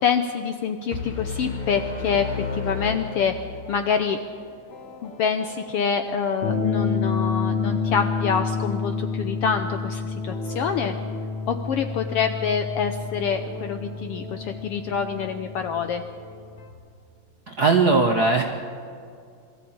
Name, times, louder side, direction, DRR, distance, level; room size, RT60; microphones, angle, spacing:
voice 1, 0.0-3.3 3.7-4.2 5.0-10.9 11.5-16.0, left 6 dB, 70° left, 7 dB, 1.4 m, -26 dB
sound 1, 0.9-4.0, left 5 dB, 25° left, 1.1 m, -32 dB
sound 2, 2.0-16.7, left 5 dB, 50° left, 3.3 m, -30 dB
voice 2, 17.5-18.4, right 3 dB, 55° right, 2 dB, 1.1 m, -19 dB
22.5 x 14.0 x 8.7 m, 2.3 s
omnidirectional pair, 3.4 m